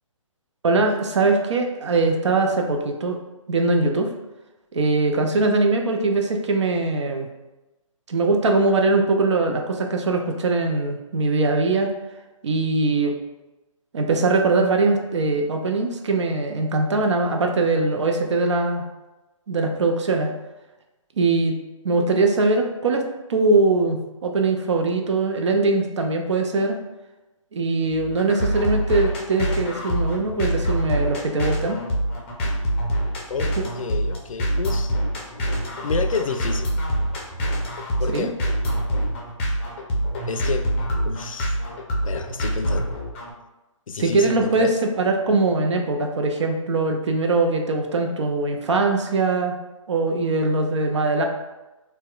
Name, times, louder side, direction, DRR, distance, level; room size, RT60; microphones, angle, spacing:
voice 1, 0.6-3.2 3.5-4.1 4.7-7.3 8.1-11.9 12.4-13.2 13.9-18.8 19.5-20.3 21.2-21.6 21.8-23.0 23.3-26.8 27.5-31.8 33.6-33.7 38.1-38.3 44.0-49.6 49.9-51.2, right 3 dB, 60° right, 3 dB, 0.5 m, -21 dB
sound 1, 27.9-43.3, equal, 20° left, 0.5 m, -25 dB
voice 2, 33.3-35.0 35.8-36.7 38.0-38.3 40.3-40.7 41.0-41.6 42.0-43.0 43.9-44.7, left 5 dB, 75° left, 6 dB, 0.4 m, -29 dB
4.1 x 2.2 x 2.3 m, 1.1 s
figure-of-eight pair, 145°, 17 cm